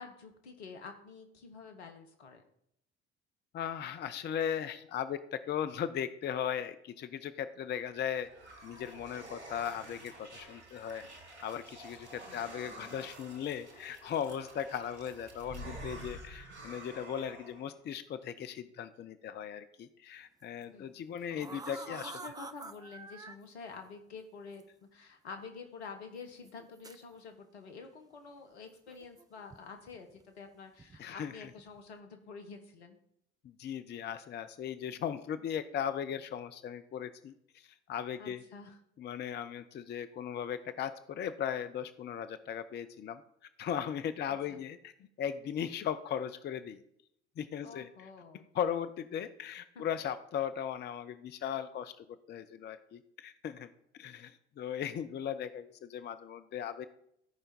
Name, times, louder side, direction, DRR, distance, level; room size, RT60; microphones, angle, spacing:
voice 1, 0.0-2.4 12.2-12.5 20.7-20.9 21.5-33.0 38.2-38.8 44.3-44.6 47.6-48.4 49.7-49.9, left 5 dB, 75° left, 6 dB, 1.3 m, -48 dB
voice 2, 3.5-8.3 8.6-11.0 11.4-22.1 31.0-31.5 33.4-38.4 39.0-43.2 43.6-44.9 45.2-46.8 47.4-48.1 48.3-53.7 54.0-56.9, left 9 dB, 30° left, 11 dB, 0.6 m, -37 dB
sound 1, 7.7-17.7, right 1 dB, 85° right, 1.2 m, -49 dB
sound 2, 20.4-20.6 21.2-23.4 24.5-24.6 25.4-25.5 26.4-27.0 28.9-29.6 29.9-30.2 30.8-31.0 31.4-31.8, right 3 dB, 10° right, 0.5 m, -48 dB
14.0 x 5.0 x 4.3 m, 0.73 s
figure-of-eight pair, 55°, 33 cm